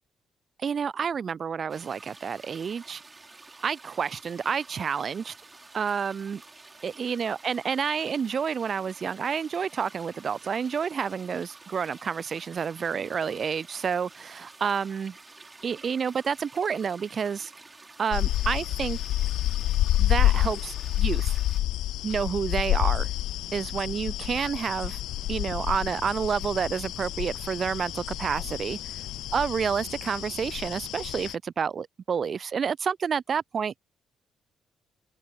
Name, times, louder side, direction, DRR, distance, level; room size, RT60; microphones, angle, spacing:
voice 1, 0.6-3.0 3.6-5.3 5.7-6.4 6.8-15.2 15.6-17.5 18.0-19.0 20.0-21.4 22.0-23.1 23.5-25.0 25.3-28.8 29.3-33.8, right 6 dB, 50° right, 0.3 m, -29 dB
sound 1, 1.7-21.6, right 3 dB, 25° right, 3.9 m, -50 dB
sound 2, 18.1-31.3, left 14 dB, 65° left, 0.4 m, -28 dB
open air
hypercardioid pair, 45°, 0 cm